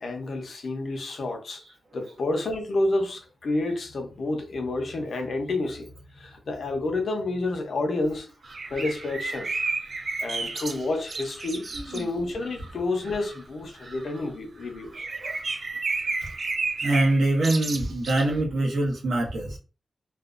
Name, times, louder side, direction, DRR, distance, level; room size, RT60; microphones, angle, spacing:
voice 1, 0.0-1.6 1.9-8.3 8.7-9.5 10.2-15.1, left 2 dB, 60° left, 0.6 m, -29 dB
sound 1, 8.4-12.0 12.4-12.7 13.0-13.4 13.8-14.2 14.6-18.4, right 3 dB, 45° right, 0.3 m, -32 dB
voice 2, 11.7-12.1 15.2-15.4 16.2-16.3 16.8-19.6, right 2 dB, 85° right, 0.8 m, -24 dB
2.5 x 2.1 x 2.4 m
wide cardioid pair, 145°, 0 cm